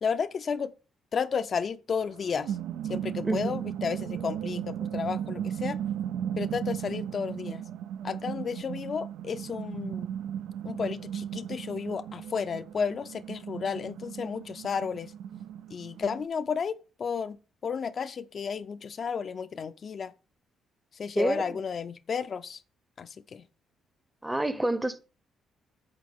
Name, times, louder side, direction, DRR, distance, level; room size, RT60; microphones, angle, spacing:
voice 1, 0.0-0.7 1.1-2.6 2.9-5.8 6.4-7.6 8.0-10.1 10.6-15.1 15.7-17.4 17.6-20.1 21.0-22.6 23.0-23.4, left 6 dB, 50° left, 0.4 m, -32 dB
sound 1, 2.0-16.3, right 9 dB, 90° right, 0.4 m, -36 dB
voice 2, 3.2-3.6 21.2-21.6 24.2-25.0, right 1 dB, 10° right, 0.7 m, -28 dB
8.7 x 6.3 x 3.5 m
cardioid pair, 90°, 0 cm